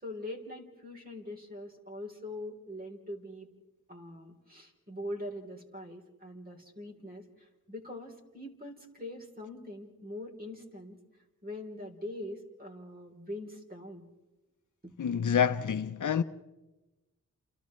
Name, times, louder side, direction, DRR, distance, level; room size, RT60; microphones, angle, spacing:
voice 1, 0.0-3.5 3.9-11.0 11.4-14.1 14.8-14.9, left 1 dB, 25° right, 3.6 m, -43 dB
voice 2, 15.0-16.2, left 7 dB, 65° left, 0.7 m, -27 dB
29.5 x 28.5 x 3.2 m
cardioid pair, 65°, 33 cm